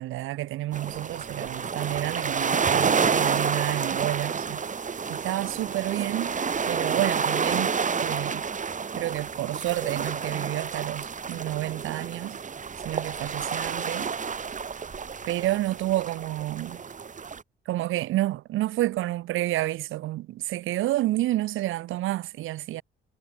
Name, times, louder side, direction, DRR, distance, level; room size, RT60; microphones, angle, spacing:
voice 1, 0.0-4.6 5.1-6.3 6.7-7.7 8.0-8.4 8.9-12.4 12.8-14.1 15.2-16.8 17.6-22.8, right 15 dB, 90° right, 3.2 m, -29 dB
sound 1, 0.7-17.4, right 6 dB, 40° right, 4.3 m, -29 dB
cardioid pair, 90°, 20 cm